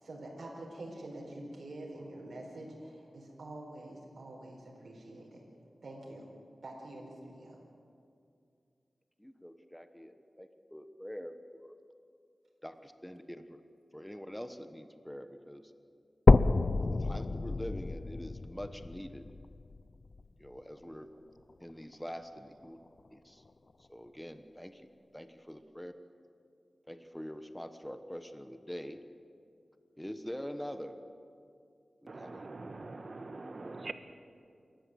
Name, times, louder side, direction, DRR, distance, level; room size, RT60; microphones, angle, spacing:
voice 1, 0.0-5.4 5.8-6.3 6.6-7.6, right 1 dB, 75° right, -2 dB, 4.4 m, -46 dB
voice 2, 9.2-11.8 12.6-13.6 13.9-15.7 16.8-19.2 20.4-21.1 21.6-22.8 23.1-23.4 23.9-24.9 25.1-25.9 26.9-29.0 30.0-31.0 32.0-32.5 33.7-33.9, equal, 5° left, 9 dB, 1.1 m, -44 dB
sound 1, 16.3-20.3 20.8-20.9 21.5-21.6 21.9-22.0 22.9-23.0, left 3 dB, 55° left, 0.5 m, -27 dB
voice 3, 32.1-33.9, right 3 dB, 55° right, 9 dB, 1.4 m, -43 dB
29.0 x 13.5 x 7.9 m, 2.4 s
wide cardioid pair, 65°, 0 cm